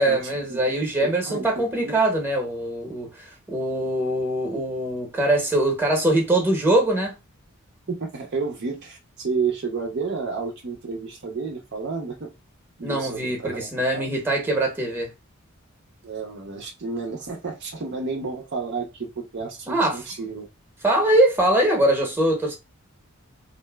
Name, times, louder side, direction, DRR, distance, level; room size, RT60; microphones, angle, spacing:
voice 1, 0.0-7.1 12.8-15.1 19.7-20.0 20.8-22.5, right 1 dB, 10° right, 0.8 m, -22 dB
voice 2, 1.0-2.0 7.9-12.3 12.8-14.1 16.0-20.5, right 4 dB, 55° right, 0.6 m, -31 dB
3.1 x 2.5 x 2.2 m
head